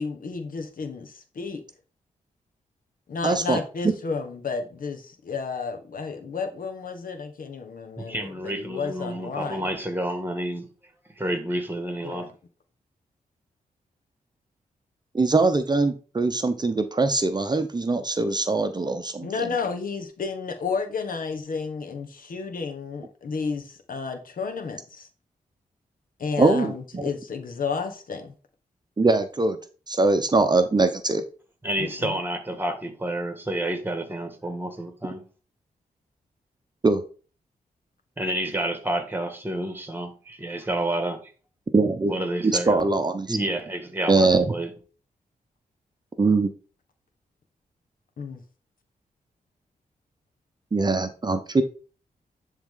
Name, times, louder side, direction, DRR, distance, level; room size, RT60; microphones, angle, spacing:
voice 1, 0.0-1.6 3.1-9.7 12.0-12.3 19.2-25.1 26.2-28.3 31.8-32.2 48.2-48.4, left 5 dB, 70° left, 1.4 m, -32 dB
voice 2, 3.2-3.6 15.1-19.3 26.4-27.0 29.0-29.6 29.9-31.2 36.8-37.0 41.7-42.1 42.4-43.4 44.1-44.5 46.2-46.5 50.7-51.6, right 3 dB, 30° right, 0.8 m, -22 dB
voice 3, 8.0-10.7 11.2-12.3 31.6-35.2 38.2-41.2 42.1-42.9 43.3-44.7, right 1 dB, 15° right, 1.8 m, -29 dB
10.5 x 3.6 x 3.8 m
cardioid pair, 80°, 15 cm